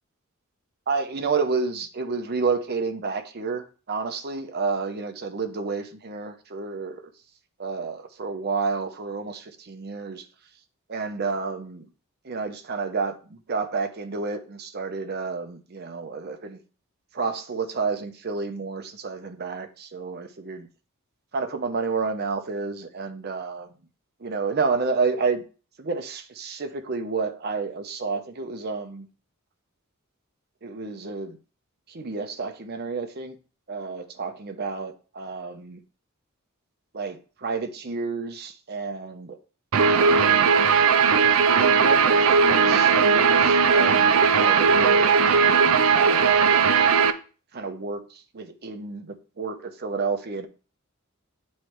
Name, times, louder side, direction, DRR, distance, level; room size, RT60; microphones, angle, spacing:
voice 1, 0.9-7.1 7.6-10.2 10.9-11.9 12.2-16.6 17.1-20.7 21.3-23.7 24.2-25.4 25.8-29.1 30.6-31.4 31.9-33.4 33.7-35.8 36.9-39.4 39.8-40.5 41.5-45.1 45.9-46.5 47.5-50.5, right 4 dB, 50° right, 0.7 m, -30 dB
Guitar, 39.7-47.1, right 6 dB, 85° right, 0.5 m, -18 dB
8.2 x 3.2 x 4.4 m
head